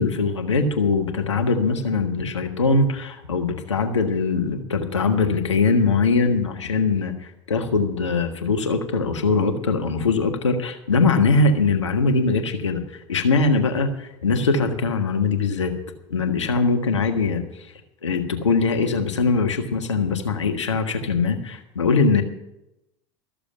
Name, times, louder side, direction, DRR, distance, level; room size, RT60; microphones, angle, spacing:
voice 1, 0.0-7.1 7.5-12.8 13.1-15.7 16.1-17.4 18.0-22.2, left 4 dB, 85° left, 4 dB, 1.5 m, -21 dB
14.0 x 6.9 x 8.9 m, 0.87 s
hypercardioid pair, 80°, 15 cm